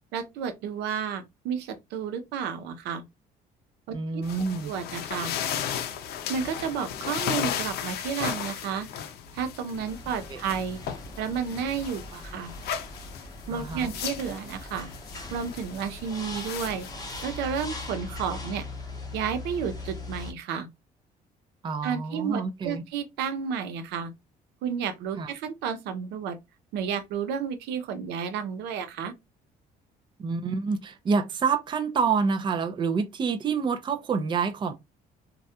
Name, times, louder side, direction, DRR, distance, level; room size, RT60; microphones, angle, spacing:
voice 1, 0.1-3.0 3.9-4.2 4.6-5.3 6.3-8.9 9.3-10.8 11.2-12.5 13.5-14.9 15.3-16.9 17.2-18.7 19.1-20.7 21.8-24.1 24.6-26.4 26.7-29.1, right 7 dB, 85° right, 0.5 m, -31 dB
voice 2, 3.9-4.7 10.3-10.4 13.5-13.9 21.6-22.8 25.2-25.3 30.2-34.7, right 5 dB, 30° right, 0.4 m, -27 dB
sound 1, 4.2-17.9, left 9 dB, 70° left, 0.5 m, -36 dB
sound 2, 9.7-20.3, left 2 dB, 20° left, 0.7 m, -40 dB
2.3 x 2.1 x 2.7 m
cardioid pair, 110°, 17 cm